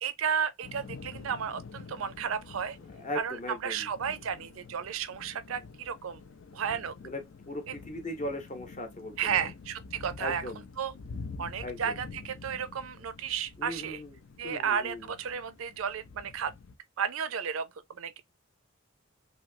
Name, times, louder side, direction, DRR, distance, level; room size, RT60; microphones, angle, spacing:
voice 1, 0.0-2.8 3.1-6.2 6.5-6.9 7.7-7.8 9.2-10.4 10.8-10.9 11.4-14.0 14.4-16.5 17.0-17.7 18.0-18.2, right 7 dB, 80° right, 0.4 m, -33 dB
Thunder / Rain, 0.6-16.8, left 4 dB, 65° left, 0.5 m, -47 dB
voice 2, 2.9-3.9 7.0-9.5 10.2-10.6 11.6-12.0 13.6-14.2 14.4-15.1, left 1 dB, 35° left, 0.8 m, -38 dB
3.0 x 2.7 x 2.6 m
head